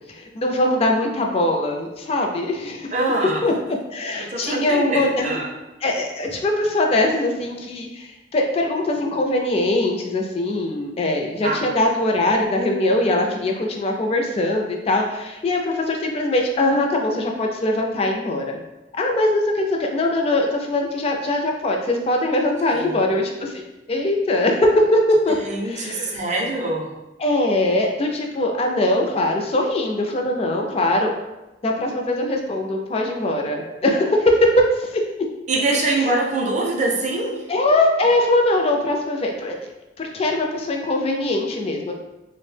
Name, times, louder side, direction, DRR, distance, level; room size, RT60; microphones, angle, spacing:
voice 1, 0.1-2.9 3.4-3.5 3.9-5.4 5.8-18.6 18.9-23.6 23.9-25.4 25.6-26.2 27.2-31.1 31.6-35.0 36.0-36.1 37.5-39.6 40.0-41.9, left 1 dB, 35° left, 2 dB, 0.3 m, -21 dB
voice 2, 2.9-3.5 4.2-5.5 11.4-11.7 22.7-23.0 25.3-26.9 35.5-37.5, right 2 dB, 40° right, -1 dB, 0.4 m, -24 dB
2.6 x 2.0 x 3.1 m, 1.0 s
head